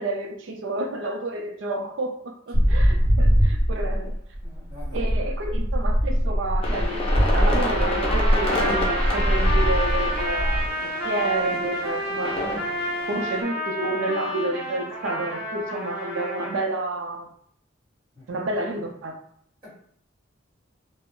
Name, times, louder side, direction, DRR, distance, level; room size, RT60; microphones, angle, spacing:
voice 1, 0.0-4.2 4.9-17.3 18.3-19.1, right 2 dB, 80° right, 4 dB, 0.5 m, -30 dB
sound 1, 2.5-10.7, equal, 50° right, 0.9 m, -22 dB
voice 2, 4.4-5.3 18.1-18.5 19.6-19.7, left 2 dB, 25° right, -8 dB, 1.4 m, -47 dB
sound 2, 6.6-13.4, left 2 dB, 30° left, 0.5 m, -30 dB
Trumpet, 7.6-16.6, equal, 5° right, 1.0 m, -30 dB
2.3 x 2.0 x 3.6 m, 0.68 s
head